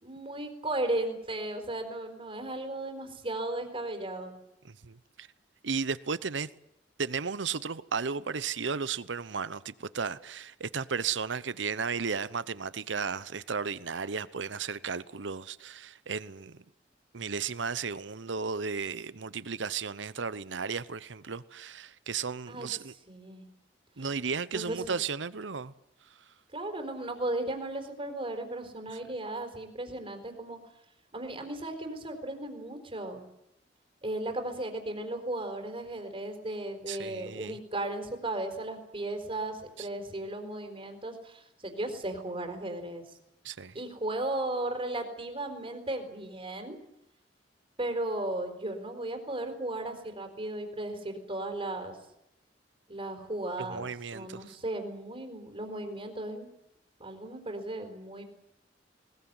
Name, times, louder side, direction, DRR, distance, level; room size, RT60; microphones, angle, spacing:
voice 1, 0.0-4.3 22.5-22.7 23.1-23.5 24.0-24.1 24.5-24.9 26.5-30.6 31.1-33.2 34.0-43.0 43.7-46.8 47.8-52.0 52.9-56.5 57.0-58.2, right 1 dB, 30° right, 4.2 m, -35 dB
voice 2, 4.6-5.3 5.6-6.5 7.0-16.6 17.1-22.9 24.0-25.7 28.9-29.0 36.9-37.6 39.8-39.9 43.4-43.8 53.6-54.6, right 5 dB, 85° right, 0.9 m, -34 dB
20.5 x 20.5 x 9.7 m
head